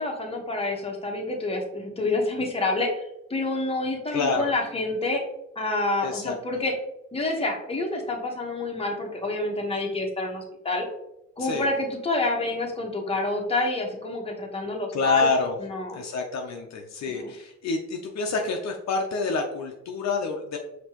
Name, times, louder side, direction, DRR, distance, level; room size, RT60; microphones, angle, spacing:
voice 1, 0.0-3.0 3.3-5.2 5.5-6.7 7.1-10.9 11.4-15.3 15.6-16.0 17.1-17.3, left 2 dB, 20° left, 0 dB, 1.1 m, -28 dB
voice 2, 4.1-4.5 6.0-6.6 11.4-11.7 14.9-15.6 15.9-20.6, left 4 dB, 65° left, 2 dB, 0.7 m, -27 dB
5.3 x 2.9 x 3.0 m, 0.83 s
cardioid pair, 90°, 30 cm